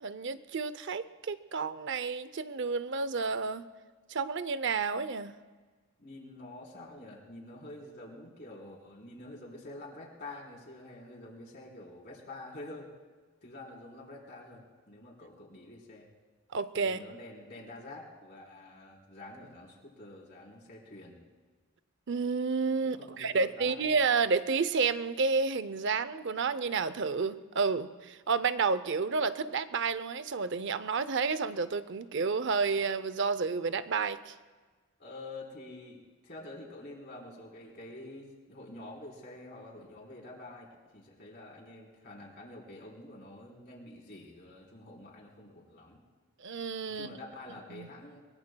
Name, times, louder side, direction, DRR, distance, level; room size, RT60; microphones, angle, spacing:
voice 1, 0.0-3.6 4.1-5.3 16.5-17.0 22.1-34.3 46.4-47.1 47.7-47.9, right 4 dB, 55° right, 13 dB, 0.6 m, -30 dB
voice 2, 6.0-12.9 13.4-16.1 16.8-21.2 22.8-24.0 35.0-46.0 46.9-48.2, left 2 dB, 45° left, -2 dB, 3.7 m, -47 dB
22.5 x 22.5 x 2.3 m, 1.4 s
head